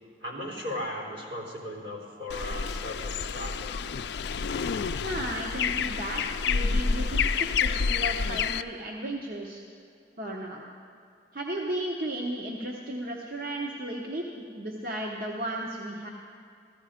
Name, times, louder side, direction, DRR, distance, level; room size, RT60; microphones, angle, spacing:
voice 1, 0.2-3.8, left 1 dB, 80° right, -3 dB, 3.6 m, -37 dB
sound 1, 2.3-8.6, left 5 dB, 65° left, 0.4 m, -29 dB
voice 2, 5.0-9.6 10.2-10.7 11.3-16.1, right 1 dB, 50° right, -1 dB, 0.9 m, -34 dB
15.0 x 14.0 x 5.0 m, 2.4 s
head